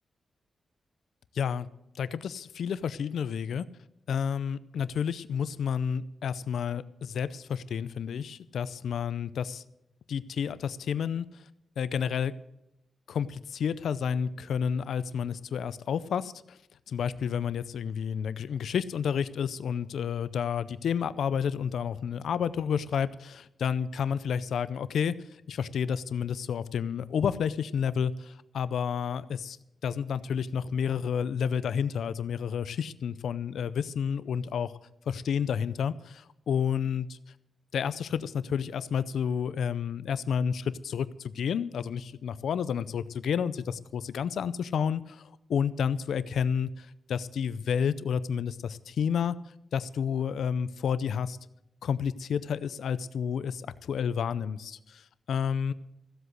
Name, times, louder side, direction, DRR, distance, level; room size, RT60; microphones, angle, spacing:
voice 1, 1.4-1.7 2.0-3.7 4.1-9.6 10.1-11.3 11.8-12.3 13.1-16.3 16.9-25.1 25.5-29.6 29.8-34.7 35.1-37.2 37.7-45.2 45.5-49.3 49.7-51.4 51.8-55.0 55.3-55.7, left 7 dB, 80° left, 16 dB, 0.5 m, -30 dB
15.0 x 8.0 x 8.0 m, 0.86 s
wide cardioid pair, 150°, 0 cm